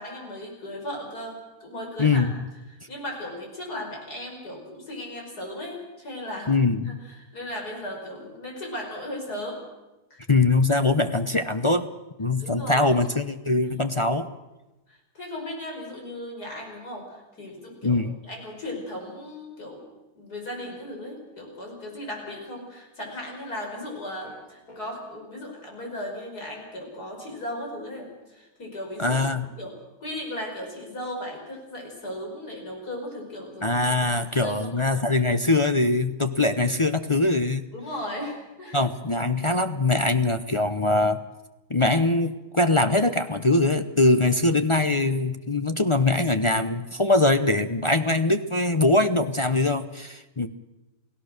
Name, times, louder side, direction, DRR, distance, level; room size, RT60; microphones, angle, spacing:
voice 1, 0.0-2.3 2.7-6.5 6.8-9.6 10.1-10.2 11.3-11.4 12.4-12.9 14.9-19.8 20.2-29.2 29.6-29.7 30.0-34.7 37.7-38.8, left 1 dB, 90° left, 1 dB, 6.1 m, -36 dB
voice 2, 2.0-2.3 6.5-7.0 10.3-11.9 12.2-14.3 17.8-18.2 29.0-29.5 33.6-37.6 38.7-41.2 41.7-50.5, left 2 dB, 30° left, 8 dB, 0.6 m, -22 dB
sound 1, 24.2-24.9, left 1 dB, 65° left, 5.3 m, -47 dB
29.0 x 17.0 x 6.6 m, 1.0 s
omnidirectional pair, 1.6 m